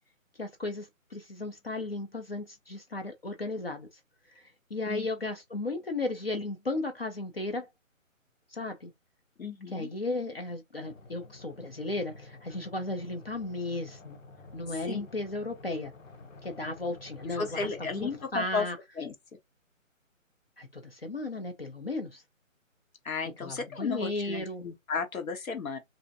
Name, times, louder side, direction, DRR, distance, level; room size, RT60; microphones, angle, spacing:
voice 1, 0.4-3.9 4.3-7.7 8.5-8.9 9.7-14.2 14.5-15.9 16.4-18.8 20.6-22.2 23.4-24.6, left 2 dB, 45° left, 0.5 m, -35 dB
voice 2, 9.4-9.9 14.9-15.0 17.3-18.7 19.0-19.1 23.0-25.8, left 5 dB, 85° left, 1.1 m, -34 dB
sound 1, 10.8-18.2, left 3 dB, 70° left, 1.0 m, -50 dB
2.5 x 2.0 x 2.5 m
hypercardioid pair, 170°, 41 cm